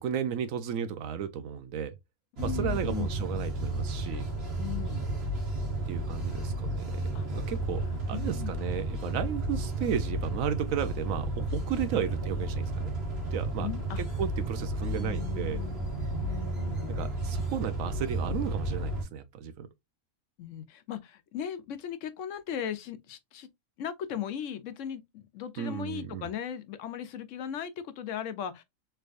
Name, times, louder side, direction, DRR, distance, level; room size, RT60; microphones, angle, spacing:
voice 1, 0.0-2.0 2.4-4.3 5.9-7.8 8.1-12.9 13.3-13.7 14.0-15.6 16.9-19.7 25.6-26.3, right 8 dB, 75° right, 1.0 m, -34 dB
voice 2, 2.3-3.1 4.6-5.1 6.3-6.6 7.1-7.3 7.8-8.6 13.6-14.0 14.9-17.0 20.4-23.5 23.8-28.6, left 9 dB, 70° left, 0.9 m, -38 dB
sound 1, 2.4-19.0, right 1 dB, 50° right, 1.4 m, -32 dB
3.3 x 3.2 x 2.4 m
omnidirectional pair, 1.4 m